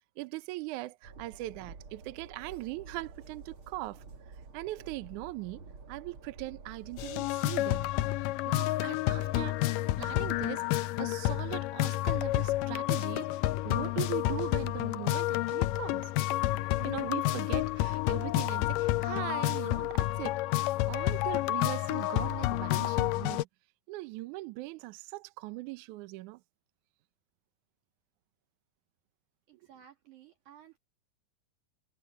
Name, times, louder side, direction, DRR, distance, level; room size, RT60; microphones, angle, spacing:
voice 1, 0.2-4.0 4.5-7.9 8.5-9.6 10.0-13.3 13.6-16.1 16.8-20.4 20.9-23.5 23.9-26.4, right 19 dB, 75° right, 1.9 m, -40 dB
Train, 1.0-7.3, right 4 dB, 40° right, 2.9 m, -50 dB
sound 1, 7.0-23.4, left 15 dB, 80° left, 2.1 m, -30 dB
voice 2, 29.5-30.8, right 10 dB, 60° right, 3.2 m, -55 dB
omnidirectional pair, 4.2 m